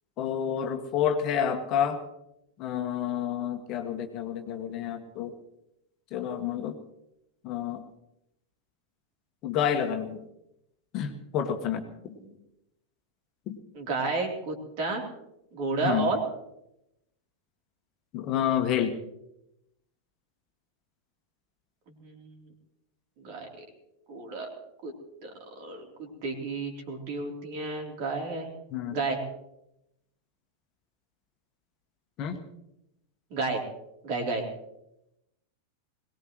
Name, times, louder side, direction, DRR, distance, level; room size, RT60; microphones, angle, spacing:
voice 1, 0.2-2.0 2.6-5.3 6.1-6.8 7.4-7.8 9.4-10.2 10.9-11.9 13.5-13.6 15.8-16.1 18.1-19.0 28.7-29.0 32.2-32.4, left 9 dB, 35° left, 5 dB, 1.7 m, -29 dB
voice 2, 13.7-15.1 15.5-16.2 21.9-22.5 23.2-23.6 24.1-24.5 24.8-24.9 25.2-25.3 25.6-28.5 28.9-29.2 33.3-33.6 34.0-34.5, right 3 dB, 45° right, 1 dB, 3.6 m, -31 dB
22.0 x 18.5 x 3.2 m, 0.85 s
figure-of-eight pair, 90°, 0 cm